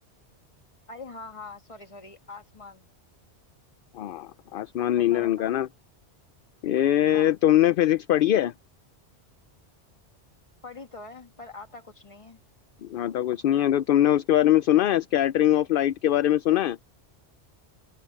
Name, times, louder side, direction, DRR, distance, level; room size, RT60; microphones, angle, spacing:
voice 1, 0.9-2.9 4.9-5.5 7.1-7.3 10.6-12.4, left 3 dB, 30° left, 1.6 m, -43 dB
voice 2, 3.9-5.7 6.6-8.5 12.8-16.8, left 12 dB, 60° left, 0.6 m, -22 dB
open air
omnidirectional pair, 1.2 m